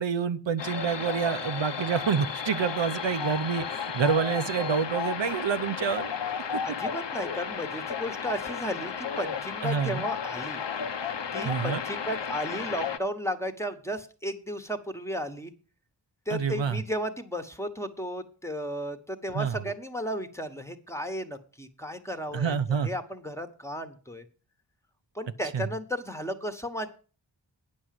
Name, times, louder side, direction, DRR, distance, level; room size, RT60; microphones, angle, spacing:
voice 1, 0.0-6.1 9.6-10.0 11.4-11.8 16.3-16.8 19.3-19.5 22.3-22.9 25.5-25.6, right 6 dB, 80° right, 10 dB, 0.8 m, -27 dB
sound 1, 0.6-13.0, left 6 dB, 70° left, 0.9 m, -33 dB
voice 2, 6.6-10.6 11.3-15.5 16.3-24.3 25.1-26.9, equal, 5° left, 8 dB, 1.2 m, -34 dB
9.8 x 6.3 x 7.6 m, 0.37 s
wide cardioid pair, 85°, 45 cm